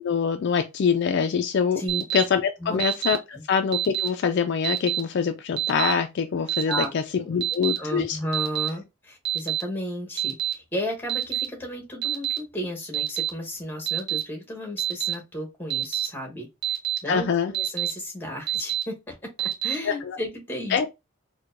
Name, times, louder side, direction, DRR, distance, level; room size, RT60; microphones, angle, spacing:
voice 1, 0.0-1.8 2.1-3.2 3.5-8.2 17.1-17.5 19.9-20.2 20.7-20.9, left 6 dB, 55° left, 0.3 m, -24 dB
Alarm, 1.9-2.2 2.8-3.2 3.7-4.1 4.6-5.0 5.6-5.9 6.5-6.8 7.4-7.8 8.3-8.7 9.2-9.6 10.2-10.5 11.1-11.4 12.0-12.4 12.9-13.3 13.9-14.2 14.8-15.1 15.7-16.1 16.6-17.0 17.5-17.9 18.5-18.8 19.4-19.7, right 12 dB, 50° right, 0.9 m, -26 dB
voice 2, 7.8-20.9, left 1 dB, 10° left, 1.0 m, -34 dB
4.4 x 2.2 x 2.5 m
head